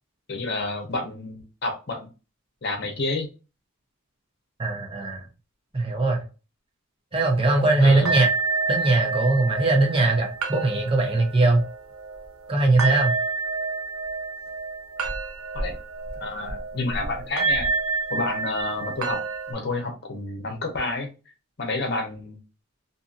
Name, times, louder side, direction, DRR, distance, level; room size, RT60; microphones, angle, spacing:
voice 1, 0.3-2.1 2.6-3.3 7.8-8.1 15.5-15.8 16.2-17.7 18.1-19.2 19.5-21.1 21.6-22.4, left 2 dB, 50° left, 0.8 m, -29 dB
voice 2, 4.6-5.3 5.7-6.2 7.1-8.3 8.7-11.6 12.5-13.1, right 2 dB, 25° right, 0.8 m, -20 dB
sound 1, 7.3-19.5, right 3 dB, 90° right, 0.6 m, -29 dB
2.6 x 2.6 x 2.5 m
head